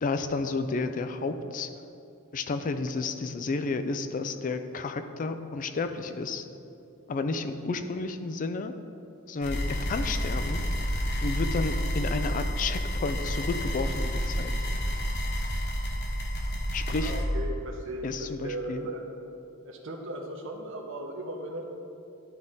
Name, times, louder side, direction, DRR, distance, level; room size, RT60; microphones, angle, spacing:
voice 1, 0.0-1.7 2.3-6.4 7.1-8.7 9.3-10.6 11.2-14.5 16.7-17.1 18.0-18.9, left 3 dB, 40° left, 9 dB, 0.4 m, -31 dB
sound 1, 9.4-17.2, equal, 55° left, 1.1 m, -30 dB
voice 2, 16.9-19.0 19.6-21.6, right 1 dB, 65° right, 1 dB, 0.9 m, -37 dB
11.5 x 3.9 x 3.6 m, 2.6 s
head